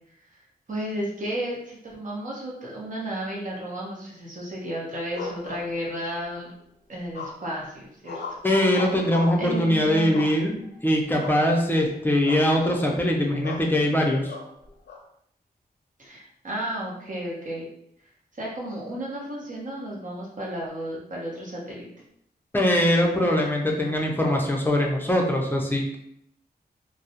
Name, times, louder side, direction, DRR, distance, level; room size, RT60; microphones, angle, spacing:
voice 1, 0.7-6.5 6.9-8.2 8.7-9.0 9.4-10.4 16.0-17.7 18.4-21.9, right 1 dB, 50° right, -3 dB, 0.8 m, -33 dB
sound 1, 5.1-6.2 7.1-7.6 8.0-9.5 10.1-10.7 11.2-11.5 11.8-11.9 12.3-12.8 13.4-13.7 14.3-15.0, left 4 dB, 90° left, 0.5 m, -37 dB
voice 2, 8.4-14.3 22.5-26.0, left 1 dB, 10° left, 0 dB, 0.5 m, -22 dB
2.3 x 2.0 x 2.7 m, 0.72 s
wide cardioid pair, 85°, 17 cm